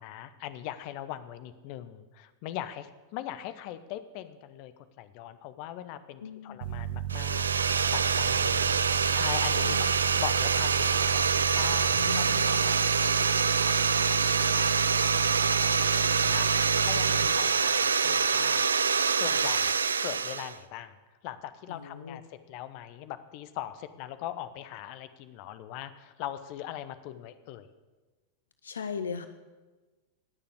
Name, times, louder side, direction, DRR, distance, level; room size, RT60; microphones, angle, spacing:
voice 1, 0.0-4.7 5.0-7.5 7.9-8.8 9.1-12.8 13.3-14.8 15.1-18.6 19.1-21.0 21.2-27.7, left 12 dB, 45° left, 12 dB, 0.9 m, -41 dB
voice 2, 6.2-6.7 9.6-10.0 12.0-12.9 16.9-17.6 21.7-22.2 28.6-29.3, left 5 dB, 70° left, 10 dB, 0.7 m, -39 dB
sound 1, 6.6-17.3, right 8 dB, 55° right, 0.9 m, -33 dB
sound 2, 7.1-20.6, right 5 dB, 70° right, 0.4 m, -26 dB
19.0 x 6.9 x 7.9 m, 1.3 s
figure-of-eight pair, 90°, 0 cm